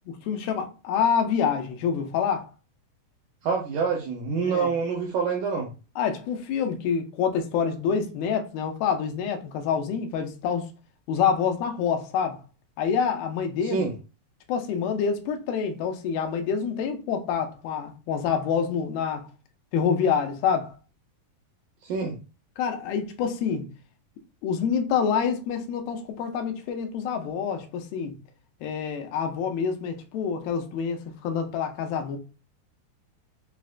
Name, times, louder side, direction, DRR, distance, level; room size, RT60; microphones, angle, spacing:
voice 1, 0.3-2.5 4.5-4.7 6.0-10.7 11.1-12.4 12.8-13.9 14.5-19.3 19.7-20.8 22.6-23.7 24.4-28.2 28.6-32.2, left 7 dB, 90° left, 2.4 m, -27 dB
voice 2, 3.4-5.7 13.6-13.9 21.8-22.2, right 5 dB, 85° right, 1.7 m, -26 dB
5.8 x 2.0 x 2.4 m
omnidirectional pair, 4.2 m